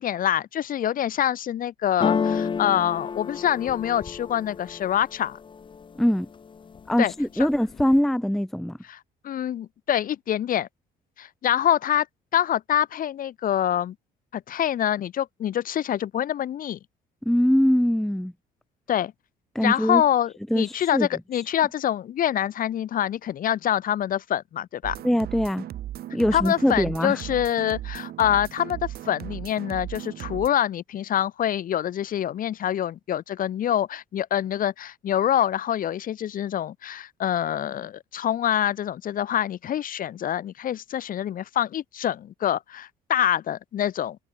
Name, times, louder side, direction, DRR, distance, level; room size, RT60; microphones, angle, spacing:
voice 1, 0.0-5.4 7.0-7.1 8.9-9.0 9.2-10.7 11.2-12.1 12.3-13.9 14.3-16.8 18.9-19.1 19.6-25.0 26.3-44.2, left 10 dB, 55° left, 2.4 m, -25 dB
sound 1, 2.0-5.9 6.3-6.9 7.2-8.0, left 6 dB, 30° left, 1.0 m, -30 dB
voice 2, 6.0-6.3 6.9-8.8 17.3-18.3 19.5-20.0 20.5-21.1 25.0-25.7 26.1-27.2, equal, ahead, 0.5 m, -22 dB
sound 2, 24.8-30.5, right 12 dB, 65° right, 3.1 m, -37 dB
cardioid pair, 110°, 17 cm